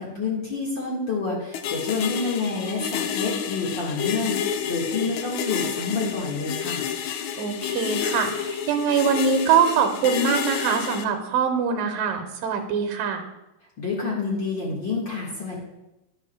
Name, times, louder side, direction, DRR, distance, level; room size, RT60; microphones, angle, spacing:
voice 1, 0.0-6.9 13.8-15.6, left 4 dB, 45° left, -5 dB, 1.8 m, -28 dB
sound 1, 1.5-11.0, left 8 dB, 90° left, 1.6 m, -30 dB
voice 2, 7.4-13.2, right 6 dB, 85° right, 6 dB, 2.6 m, -23 dB
11.5 x 9.7 x 2.2 m, 0.95 s
omnidirectional pair, 3.9 m